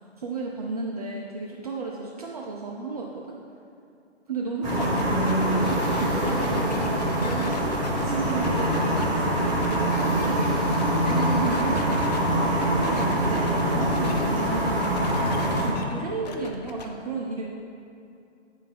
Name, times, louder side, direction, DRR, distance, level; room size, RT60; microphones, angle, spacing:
voice 1, 0.2-3.4 4.3-6.7 7.2-7.6 8.0-15.0 15.5-17.5, right 3 dB, 35° right, -2 dB, 0.5 m, -33 dB
sound 1, 4.6-15.7, right 1 dB, 10° right, 0.8 m, -24 dB
sound 2, 4.7-12.2 12.6-14.2 14.5-16.9, left 4 dB, 35° left, 0.5 m, -39 dB
9.1 x 4.0 x 4.1 m, 2.5 s
figure-of-eight pair, 135°, 35 cm